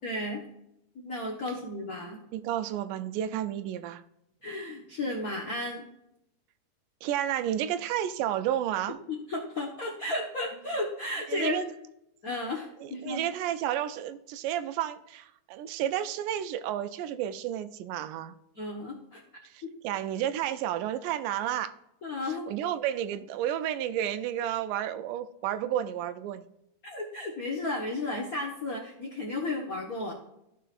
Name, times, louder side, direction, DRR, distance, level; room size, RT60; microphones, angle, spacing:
voice 1, 0.0-0.4 0.9-2.2 4.4-5.9 9.1-11.6 12.2-13.2 18.5-19.2 19.6-19.7 22.0-22.5 26.8-30.1, left 2 dB, 75° left, -2 dB, 0.8 m, -33 dB
voice 2, 2.3-4.0 7.0-9.0 11.3-11.7 12.8-18.4 19.4-21.7 22.3-26.5, right 11 dB, 90° right, 12 dB, 2.2 m, -31 dB
15.0 x 5.5 x 2.5 m, 0.83 s
omnidirectional pair, 3.7 m